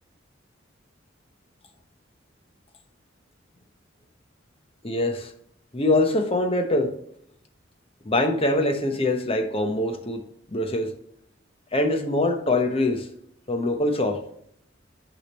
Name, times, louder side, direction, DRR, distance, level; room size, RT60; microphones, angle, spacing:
voice 1, 4.8-5.3 5.7-6.9 8.0-10.2 10.5-10.9 11.7-13.1 13.5-14.2, left 2 dB, 30° left, 0.9 m, -23 dB
8.3 x 5.1 x 3.0 m
head